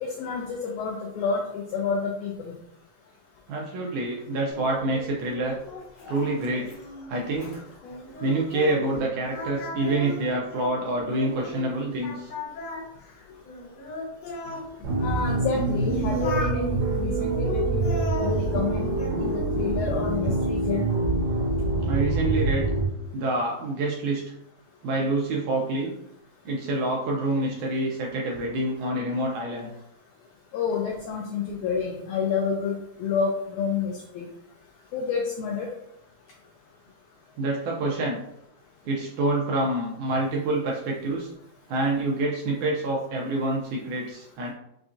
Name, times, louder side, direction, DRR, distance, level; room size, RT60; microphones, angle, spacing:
voice 1, 0.0-2.5 15.0-17.9 18.2-18.9 19.2-20.9 30.5-34.3 34.9-35.7, left 5 dB, 85° left, 1 dB, 1.7 m, -29 dB
voice 2, 3.5-5.6 6.1-6.7 7.1-7.6 8.2-12.3 21.9-22.7 23.1-24.2 24.8-25.9 26.5-29.7 37.4-38.2 38.9-41.3 41.7-44.5, right 2 dB, 80° right, -2 dB, 1.9 m, -27 dB
Singing, 4.5-9.0 9.3-11.7 12.0-14.7 15.3-16.6 17.2-19.2 19.5-20.1, left 2 dB, 60° left, 1.9 m, -37 dB
sound 1, 14.8-22.8, right 2 dB, 60° right, 2.3 m, -25 dB
5.7 x 2.3 x 2.5 m, 0.79 s
omnidirectional pair, 4.0 m